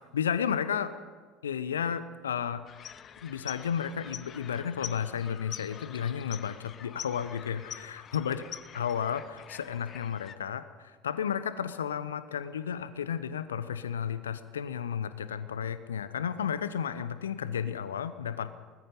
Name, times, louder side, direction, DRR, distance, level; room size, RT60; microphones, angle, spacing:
voice 1, 0.1-0.9 1.4-2.6 3.2-8.4 8.7-18.6, left 8 dB, 75° left, 14 dB, 0.8 m, -33 dB
sound 1, 2.7-10.4, left 8 dB, 40° left, 0.9 m, -45 dB
24.0 x 19.5 x 5.5 m, 1.5 s
figure-of-eight pair, 65°, 0 cm